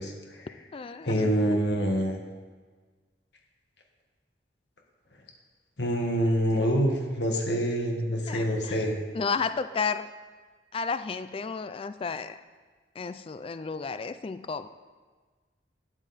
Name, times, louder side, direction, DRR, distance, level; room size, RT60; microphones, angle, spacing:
voice 1, 0.0-0.5 1.0-2.2 5.8-9.0, equal, 65° left, 2 dB, 1.6 m, -26 dB
voice 2, 0.7-1.6 8.3-8.8 9.1-10.1 10.7-12.4 13.0-14.7, left 5 dB, 30° left, 12 dB, 0.3 m, -32 dB
12.0 x 9.1 x 4.2 m, 1.4 s
head